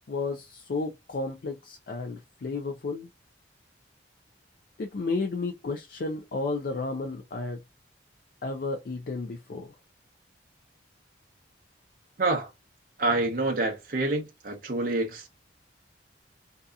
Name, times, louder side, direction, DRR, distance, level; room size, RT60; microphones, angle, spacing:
voice 1, 0.1-3.1 4.8-7.6 8.4-9.8, left 3 dB, 50° left, 0.4 m, -32 dB
voice 2, 12.2-12.5 13.0-15.3, right 2 dB, 50° right, 0.6 m, -27 dB
2.7 x 2.4 x 2.3 m
head